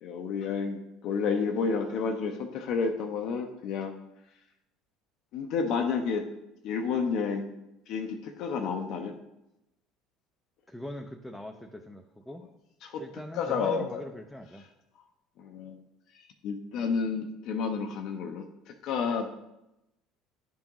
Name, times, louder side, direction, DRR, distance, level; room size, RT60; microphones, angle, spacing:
voice 1, 0.0-3.9 5.3-6.3 6.6-7.5 7.9-9.1 12.8-13.0 13.4-14.0 15.4-15.8 16.1-19.3, left 5 dB, 65° left, 4 dB, 0.5 m, -30 dB
voice 2, 10.7-12.5 13.0-14.6 19.1-19.3, left 1 dB, 5° left, 3 dB, 0.5 m, -42 dB
10.0 x 3.6 x 3.0 m, 0.90 s
hypercardioid pair, 75°, 0 cm